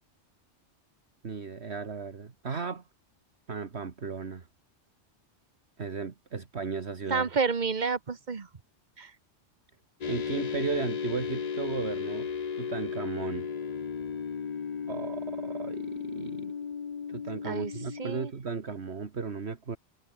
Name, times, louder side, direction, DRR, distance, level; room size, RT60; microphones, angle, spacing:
voice 1, 1.2-2.8 3.5-4.5 5.8-7.3 10.0-12.3 12.6-13.5 14.9-16.5 17.1-19.8, right 5 dB, 65° right, 1.9 m, -35 dB
voice 2, 7.1-8.5 9.0-9.1 17.4-17.7 18.0-18.3, right 5 dB, 40° right, 1.2 m, -29 dB
sound 1, 10.0-18.3, left 6 dB, 40° left, 0.8 m, -35 dB
omnidirectional pair, 1.2 m